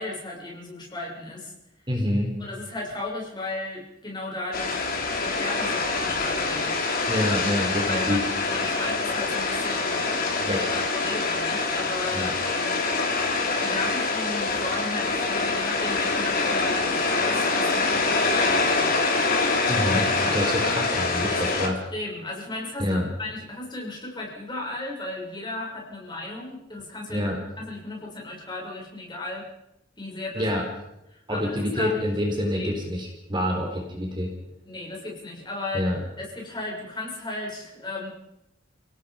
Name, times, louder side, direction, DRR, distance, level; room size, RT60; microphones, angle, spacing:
voice 1, 0.0-1.5 2.4-5.0 5.2-6.8 7.9-12.8 13.6-19.0 19.7-20.7 21.3-27.2 27.6-29.4 30.0-30.4 31.1-32.0 32.5-32.9 34.6-38.1, left 2 dB, 25° left, -2 dB, 6.5 m, -35 dB
voice 2, 1.9-2.3 7.1-8.2 10.4-10.7 12.1-12.3 19.7-21.7 22.8-23.1 27.1-27.4 30.3-30.6 31.3-34.3 35.7-36.0, left 1 dB, 25° right, 1 dB, 4.0 m, -27 dB
sound 1, 4.5-21.7, left 3 dB, 50° left, 3.5 m, -25 dB
29.5 x 18.0 x 5.1 m, 0.87 s
head